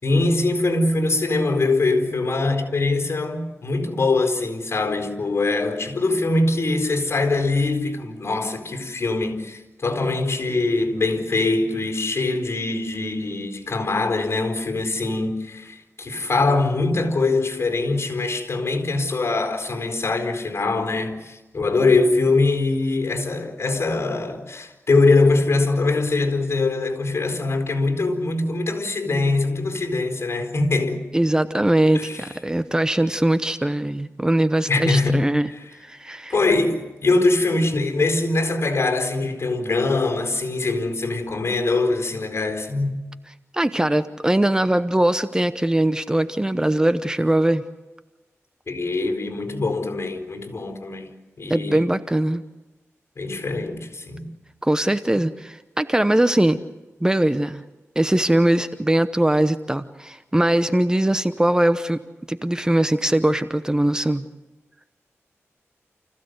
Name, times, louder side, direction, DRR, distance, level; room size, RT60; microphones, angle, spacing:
voice 1, 0.0-31.0 31.9-32.2 34.7-35.3 36.3-42.9 48.7-51.9 53.2-54.3, left 3 dB, 55° left, 4.4 m, -22 dB
voice 2, 31.1-35.5 35.8-36.4 43.5-47.6 51.5-52.4 54.6-56.6 57.0-57.6 58.0-62.0 62.3-64.3, right 1 dB, 15° right, 0.9 m, -21 dB
29.5 x 16.0 x 8.1 m
wide cardioid pair, 80°, 5 cm